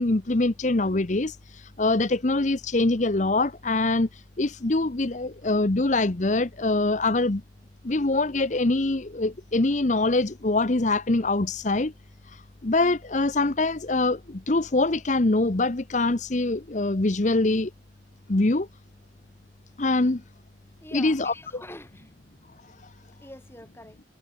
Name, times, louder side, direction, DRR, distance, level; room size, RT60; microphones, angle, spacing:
voice 1, 0.0-7.4 7.8-11.9 12.3-17.7 18.3-18.7 19.8-20.2 20.9-21.6, left 2 dB, 45° left, 0.9 m, -24 dB
voice 2, 20.8-22.1 23.2-24.0, left 1 dB, 15° left, 4.1 m, -45 dB
head